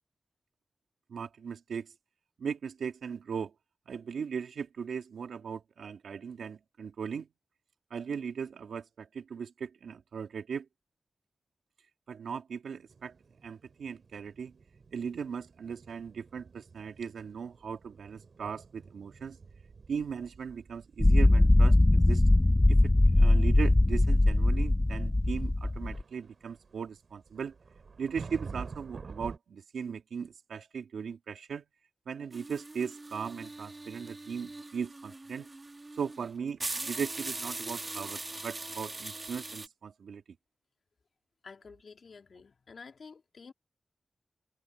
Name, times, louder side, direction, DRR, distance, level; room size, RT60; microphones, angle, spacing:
voice 1, 1.1-1.9 2.4-3.5 3.9-7.3 7.9-10.7 12.1-13.1 13.4-14.5 14.9-19.4 19.9-22.2 22.7-27.5 28.0-31.6 32.1-35.5 35.9-40.2, right 6 dB, 85° right, 2.1 m, -38 dB
sound 1, 12.9-29.4, right 4 dB, 65° right, 3.1 m, -49 dB
sound 2, 21.0-26.0, left 2 dB, 25° left, 0.6 m, -22 dB
sound 3, 32.3-39.7, right 2 dB, 35° right, 2.0 m, -41 dB
voice 2, 41.4-43.5, left 5 dB, 70° left, 3.2 m, -50 dB
cardioid pair, 40°, 0 cm